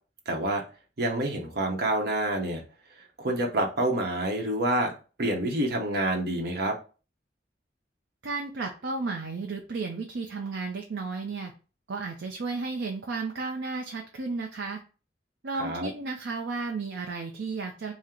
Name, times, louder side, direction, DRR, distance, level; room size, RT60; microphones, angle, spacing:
voice 1, 0.3-0.6 1.0-2.6 3.2-4.9 5.2-6.8 15.6-15.9, right 1 dB, 60° right, 1 dB, 0.8 m, -27 dB
voice 2, 8.2-11.5 11.9-14.8 15.4-17.9, right 3 dB, 85° right, 2 dB, 0.5 m, -33 dB
3.7 x 2.1 x 4.3 m, 0.35 s
head